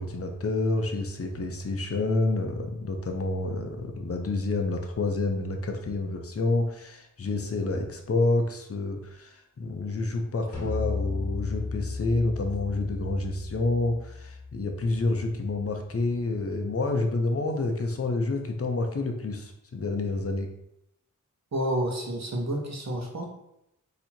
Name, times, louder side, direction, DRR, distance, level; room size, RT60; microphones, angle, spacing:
voice 1, 0.0-20.5, left 2 dB, 45° left, 3 dB, 0.7 m, -28 dB
sound 1, 10.5-15.9, left 4 dB, 65° left, 1.4 m, -35 dB
voice 2, 21.5-23.2, right 1 dB, 55° right, 1 dB, 1.1 m, -29 dB
4.1 x 2.9 x 4.3 m, 0.82 s
wide cardioid pair, 85°, 32 cm